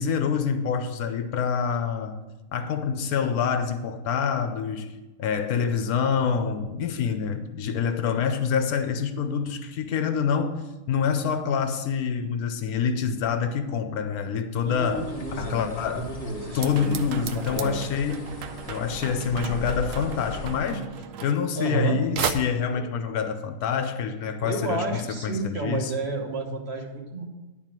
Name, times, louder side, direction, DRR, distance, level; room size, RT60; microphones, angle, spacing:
voice 1, 0.0-2.2 2.5-4.9 5.2-10.6 10.9-16.1 16.5-18.2 18.7-20.8 21.2-25.9, left 6 dB, 90° left, 8 dB, 1.2 m, -26 dB
Bird, 14.6-20.9, left 3 dB, 30° left, 1.0 m, -40 dB
voice 2, 14.6-17.8 21.5-22.0 22.7-22.8 24.4-27.2, right 3 dB, 45° right, 2 dB, 1.4 m, -31 dB
sound 1, 16.6-21.9 22.2-22.3, right 8 dB, 70° right, 1.0 m, -34 dB
11.0 x 4.3 x 7.4 m, 1.1 s
omnidirectional pair, 1.5 m